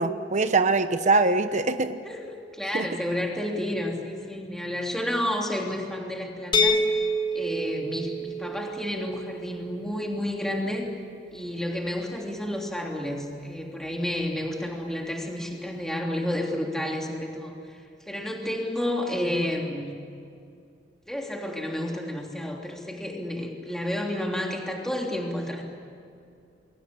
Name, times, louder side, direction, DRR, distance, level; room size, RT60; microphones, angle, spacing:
voice 1, 0.0-2.0 2.7-2.9, right 3 dB, 40° right, 8 dB, 1.1 m, -23 dB
voice 2, 2.0-7.1 7.3-10.9 11.3-17.8 18.0-19.9 21.1-25.6, left 1 dB, 5° left, 0 dB, 3.2 m, -31 dB
sound 1, 6.5-12.3, left 1 dB, 25° left, 2.1 m, -29 dB
28.0 x 23.5 x 8.7 m, 2.5 s
head